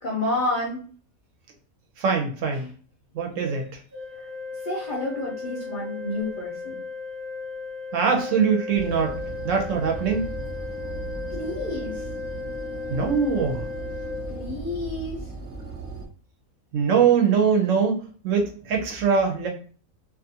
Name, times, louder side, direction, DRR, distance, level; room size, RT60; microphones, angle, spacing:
voice 1, 0.0-0.8 2.5-2.7 4.2-4.3 4.6-6.8 11.3-12.0 14.3-15.2, left 2 dB, 50° left, -3 dB, 0.6 m, -30 dB
voice 2, 2.0-2.7 3.1-3.6 7.9-9.2 9.4-10.3 12.9-13.7 16.7-19.5, right 6 dB, 70° right, 2 dB, 0.9 m, -22 dB
Organ, 3.9-15.0, left 4 dB, 20° right, 0.5 m, -36 dB
sound 1, 8.7-16.0, right 3 dB, 45° right, 0.9 m, -37 dB
2.4 x 2.4 x 2.7 m, 0.41 s
omnidirectional pair, 1.4 m